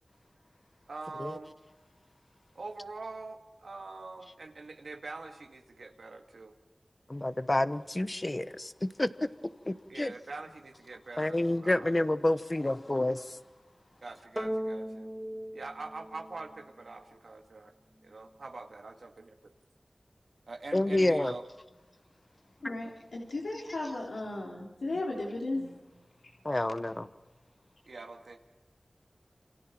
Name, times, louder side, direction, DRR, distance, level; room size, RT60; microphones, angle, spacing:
voice 1, 0.9-1.5 2.6-6.5 9.7-11.9 14.0-15.1 15.5-17.7 18.0-19.1 20.5-21.4 24.7-24.9 27.9-28.4, right 3 dB, 85° right, 3 dB, 2.1 m, -44 dB
voice 2, 7.1-9.3 9.7-10.1 11.2-13.4 20.7-21.3 26.4-27.1, left 1 dB, 30° left, 13 dB, 1.0 m, -29 dB
sound 1, 14.4-16.9, equal, 5° right, 0.6 m, -37 dB
voice 3, 22.6-25.7, left 2 dB, 90° left, -3 dB, 3.6 m, -35 dB
27.5 x 27.5 x 4.6 m, 1.1 s
wide cardioid pair, 65°, 0 cm